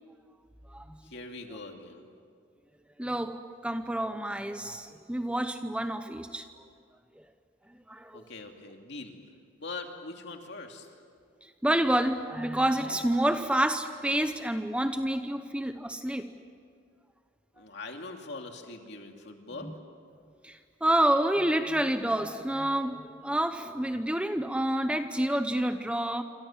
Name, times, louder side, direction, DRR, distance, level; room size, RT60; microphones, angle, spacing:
voice 1, 1.0-2.1 8.1-9.2 9.6-10.9 17.6-19.7, left 3 dB, 55° left, 2.7 m, -42 dB
voice 2, 3.0-6.5 7.9-8.2 11.4-16.3 19.7-19.8 20.4-26.2, right 1 dB, 5° right, 0.7 m, -28 dB
27.0 x 26.5 x 7.4 m
head